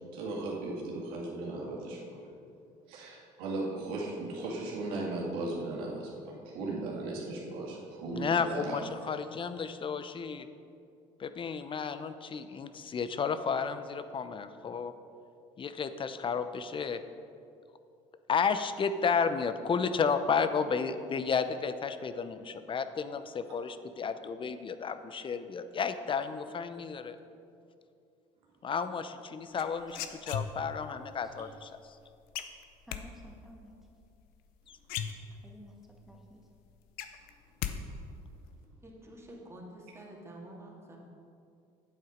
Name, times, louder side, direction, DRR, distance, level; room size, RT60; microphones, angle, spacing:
voice 1, 0.0-2.0 2.9-8.8, right 2 dB, 85° right, -3 dB, 2.2 m, -37 dB
voice 2, 8.1-10.5 11.2-14.9 15.6-17.0 18.3-27.2 28.6-31.7 34.7-34.8, left 6 dB, 35° left, 11 dB, 0.6 m, -32 dB
sound 1, 29.6-30.9 32.3-33.0 34.4-34.5 34.8-35.7 36.1-36.2 36.5-37.8 38.0-38.5, left 9 dB, 80° left, 0.6 m, -37 dB
voice 3, 30.6-31.5 32.9-33.8 35.4-36.4, equal, ahead, 0 dB, 1.5 m, -53 dB
voice 4, 38.8-41.0, right 1 dB, 15° right, -3 dB, 2.2 m, -48 dB
8.8 x 7.7 x 5.1 m, 2.5 s
supercardioid pair, 85°, 15 cm